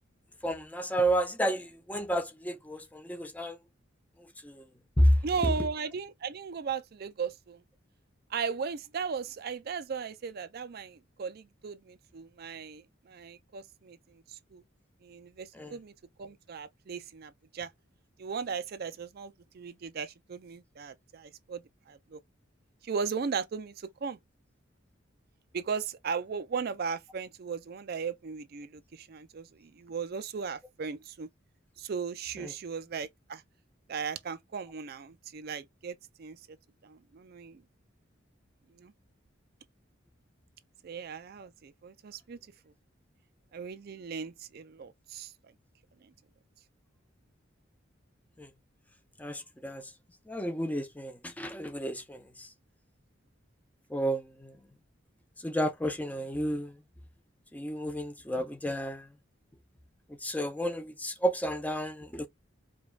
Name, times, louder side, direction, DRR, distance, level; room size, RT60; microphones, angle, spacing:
voice 1, 0.4-3.6 4.4-4.6 5.0-5.1 5.4-5.5 15.5-15.7 32.4-32.5 48.4-48.5 49.2-49.9 50.3-52.5 53.9-54.5 55.4-56.7 57.5-59.1 60.2-62.3, equal, 10° left, 0.5 m, -31 dB
voice 2, 5.2-7.6 8.3-14.6 15.0-15.9 16.2-17.7 18.2-21.6 21.9-22.2 22.8-24.2 25.5-31.3 31.8-33.4 33.9-36.4 36.8-37.6 38.8-38.9 40.8-42.4 43.5-45.3, right 6 dB, 55° right, 0.4 m, -37 dB
5.1 x 2.3 x 2.3 m
head